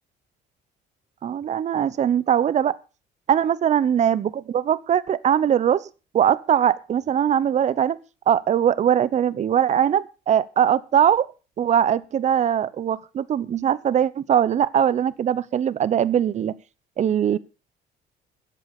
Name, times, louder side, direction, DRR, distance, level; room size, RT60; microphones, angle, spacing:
voice 1, 1.2-2.8 3.3-5.9 6.1-8.0 8.3-11.3 11.6-16.5 17.0-17.4, right 9 dB, 45° right, 19 dB, 0.8 m, -21 dB
13.0 x 8.3 x 6.5 m, 0.33 s
cardioid pair, 110°, 17 cm